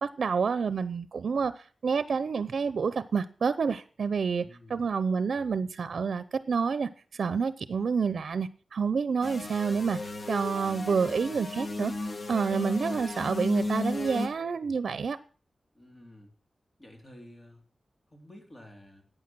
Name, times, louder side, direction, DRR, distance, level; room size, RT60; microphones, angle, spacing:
voice 1, 0.0-4.4 4.7-10.0 10.3-11.9 12.3-15.2, right 5 dB, 85° right, 0.6 m, -28 dB
voice 2, 4.4-4.9 15.7-16.3 16.8-17.6 18.1-19.0, left 1 dB, 30° left, 3.5 m, -51 dB
sound 1, 9.2-14.3, left 2 dB, 50° left, 1.4 m, -34 dB
14.5 x 9.1 x 6.1 m
wide cardioid pair, 105°, 0 cm